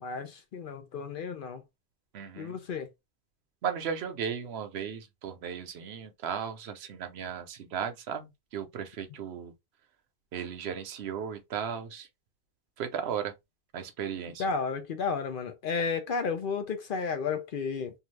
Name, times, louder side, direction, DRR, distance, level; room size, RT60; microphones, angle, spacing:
voice 1, 0.0-1.6 2.4-2.9 14.4-17.9, left 5 dB, 60° left, 0.7 m, -32 dB
voice 2, 2.1-2.6 3.6-9.5 10.3-12.1 12.8-13.3 13.7-14.4, right 7 dB, 75° right, 0.8 m, -36 dB
2.7 x 2.3 x 3.1 m
omnidirectional pair, 1.1 m